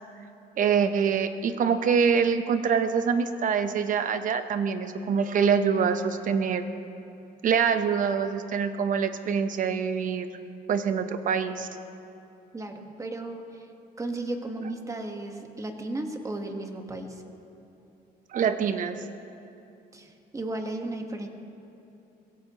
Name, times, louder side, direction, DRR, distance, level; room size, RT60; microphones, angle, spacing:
voice 1, 0.6-6.6 7.4-10.3 10.7-11.7 18.3-19.0, right 6 dB, 50° right, 9 dB, 1.0 m, -25 dB
voice 2, 12.5-13.7 14.0-17.2 19.9-21.3, right 2 dB, 20° right, 4 dB, 1.4 m, -35 dB
22.0 x 16.0 x 3.0 m, 2.8 s
cardioid pair, 110°, 17 cm